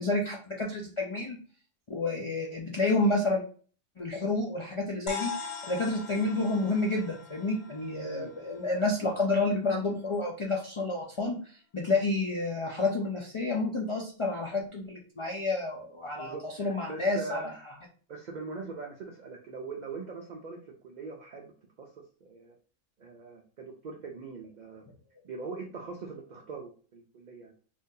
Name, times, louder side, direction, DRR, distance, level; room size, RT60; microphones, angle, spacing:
voice 1, 0.0-1.4 1.9-3.4 4.0-5.3 5.6-17.5, left 2 dB, 45° left, -1 dB, 0.4 m, -29 dB
sound 1, 5.1-9.7, left 4 dB, 85° left, 1.0 m, -42 dB
voice 2, 16.1-17.6 18.1-21.9 22.2-22.6 23.0-24.9 25.2-27.5, right 4 dB, 60° right, 1 dB, 0.4 m, -42 dB
2.7 x 2.5 x 3.7 m, 0.41 s
omnidirectional pair, 1.3 m